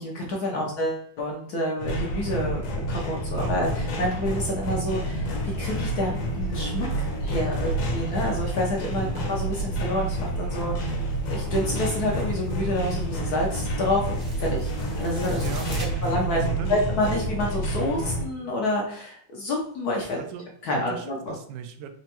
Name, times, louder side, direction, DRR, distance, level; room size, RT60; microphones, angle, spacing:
voice 1, 0.0-2.6 2.9-5.3 5.6-10.9 11.3-15.5 16.0-20.2 20.6-21.3, left 1 dB, 65° left, -1 dB, 1.0 m, -28 dB
sound 1, 1.8-18.2, right 1 dB, 85° left, 1.8 m, -28 dB
voice 2, 3.3-3.6 8.9-9.2 15.3-16.8 17.9-18.1 20.2-20.5 20.9-21.9, right 8 dB, 75° right, 8 dB, 1.0 m, -38 dB
sound 2, 4.9-15.9, right 1 dB, 25° right, 0.6 m, -49 dB
4.5 x 3.0 x 2.9 m, 0.63 s
omnidirectional pair, 2.3 m